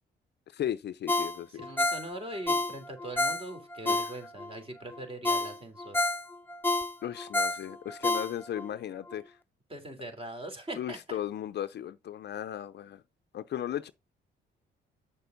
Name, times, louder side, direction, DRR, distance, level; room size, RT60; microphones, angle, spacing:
voice 1, 0.5-1.7 3.8-4.0 7.0-9.4 10.7-13.0 13.3-13.9, left 11 dB, 60° left, 0.6 m, -36 dB
Ringtone, 1.1-4.5 4.9-5.0 5.2-8.7 9.1-9.2, left 2 dB, 10° left, 0.6 m, -30 dB
voice 2, 1.5-6.0 9.7-11.2, right 1 dB, 30° right, 3.3 m, -41 dB
7.5 x 6.8 x 3.9 m
cardioid pair, 90°, 20 cm